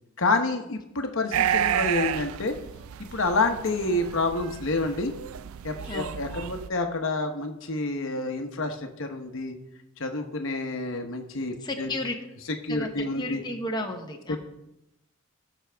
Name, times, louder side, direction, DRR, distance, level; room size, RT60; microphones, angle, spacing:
voice 1, 0.2-2.5 3.1-5.1 5.6-9.6 10.0-11.9 12.6-13.4, left 2 dB, 60° left, 5 dB, 1.0 m, -28 dB
sound 1, 1.3-6.7, right 9 dB, 75° right, 0.4 m, -31 dB
voice 2, 5.8-6.2 11.6-12.2 12.7-14.4, left 1 dB, 20° left, 2 dB, 0.9 m, -33 dB
18.0 x 6.0 x 3.4 m, 0.88 s
head